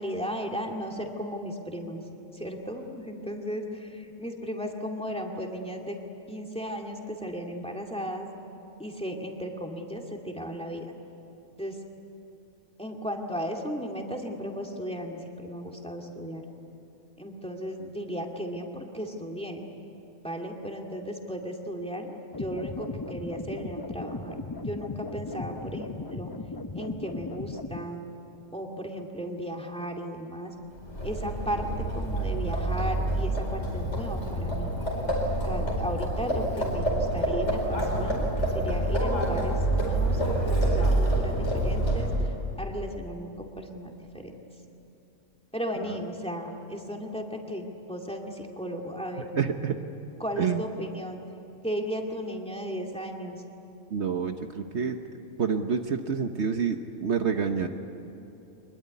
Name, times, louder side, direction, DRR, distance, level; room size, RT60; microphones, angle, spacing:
voice 1, 0.0-2.0 2.3-6.0 6.3-8.3 8.8-10.9 11.6-11.8 12.8-16.4 17.2-19.7 20.2-26.3 26.7-28.0 28.5-30.5 31.0-34.7 35.5-44.3 45.5-49.3 50.2-51.2 51.6-53.4, equal, 5° left, 1 dB, 2.2 m, -35 dB
sound 1, 22.3-27.9, left 3 dB, 20° left, 0.6 m, -37 dB
Livestock farm animals working animals, 30.7-42.4, right 1 dB, 60° left, 5.0 m, -27 dB
voice 2, 49.3-49.8 50.4-50.6 53.9-55.0 55.4-57.7, right 6 dB, 60° right, 6 dB, 1.3 m, -28 dB
24.5 x 21.5 x 9.5 m, 2.8 s
omnidirectional pair, 1.3 m